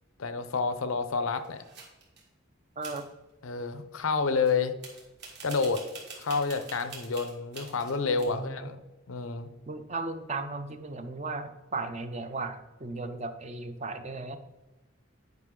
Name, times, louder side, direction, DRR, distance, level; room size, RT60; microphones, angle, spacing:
voice 1, 0.2-1.6 3.4-4.7 5.4-5.8 6.2-8.8 9.1-9.5, left 4 dB, 85° left, 11 dB, 0.6 m, -29 dB
sound 1, 1.3-2.3 2.8-3.0 4.5-4.6 4.8-8.2, right 4 dB, 55° right, 1.9 m, -46 dB
voice 2, 2.8-3.1 8.2-8.7 9.7-14.4, right 3 dB, 35° right, 9 dB, 0.5 m, -36 dB
9.4 x 5.3 x 3.7 m, 1.0 s
head